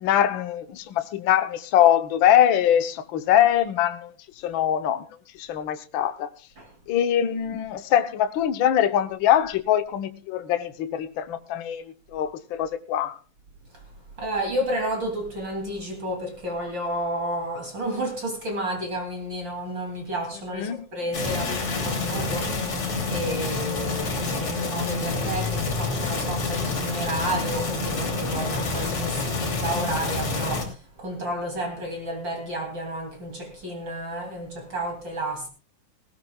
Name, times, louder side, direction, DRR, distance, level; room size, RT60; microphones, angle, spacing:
voice 1, 0.0-5.1 5.3-6.3 6.9-13.2 20.5-20.9, left 10 dB, 90° left, 1.0 m, -23 dB
voice 2, 14.2-22.7 23.1-30.7 31.0-35.5, right 1 dB, 35° right, 3.3 m, -31 dB
sound 1, 21.1-30.6, left 3 dB, 45° left, 3.8 m, -28 dB
19.5 x 17.5 x 2.3 m
omnidirectional pair, 3.6 m